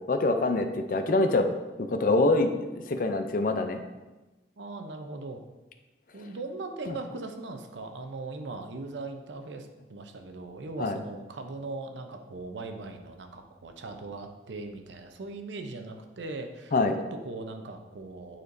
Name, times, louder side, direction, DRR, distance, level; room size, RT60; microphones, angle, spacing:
voice 1, 0.1-1.5 1.8-3.8 6.9-7.0 10.8-11.0 16.7-17.0, left 2 dB, 50° left, 7 dB, 0.5 m, -25 dB
voice 2, 4.6-5.4 6.1-18.4, right 3 dB, 80° right, 5 dB, 0.6 m, -39 dB
9.5 x 4.3 x 2.6 m, 1.1 s
head